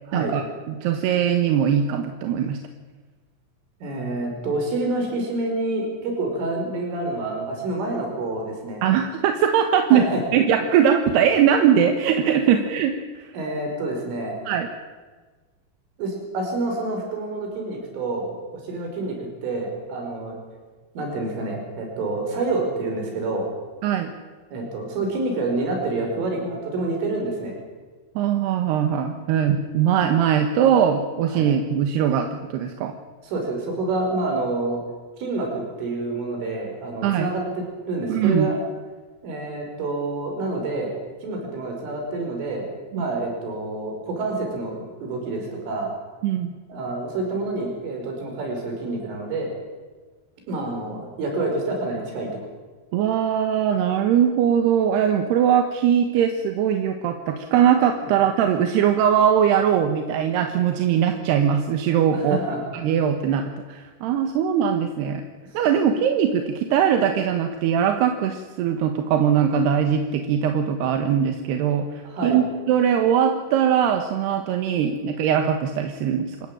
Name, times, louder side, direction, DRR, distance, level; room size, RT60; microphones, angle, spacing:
voice 1, 0.7-2.6 8.8-13.3 14.5-14.7 23.8-24.1 28.2-32.9 37.0-37.3 38.1-38.5 42.9-43.1 46.2-46.5 52.9-62.4 62.7-65.2 65.5-76.4, right 8 dB, 70° right, 6 dB, 3.0 m, -21 dB
voice 2, 3.8-8.8 9.9-10.2 13.3-14.4 16.0-19.2 19.4-20.4 21.0-23.5 24.5-27.6 31.3-31.5 33.2-34.8 35.2-37.4 37.9-38.6 39.2-40.9 41.2-42.7 42.9-45.9 46.7-49.5 50.5-52.5 62.1-62.6 72.0-72.4, right 2 dB, 90° right, 1 dB, 7.5 m, -27 dB
27.0 x 15.0 x 8.9 m, 1.4 s
omnidirectional pair, 5.5 m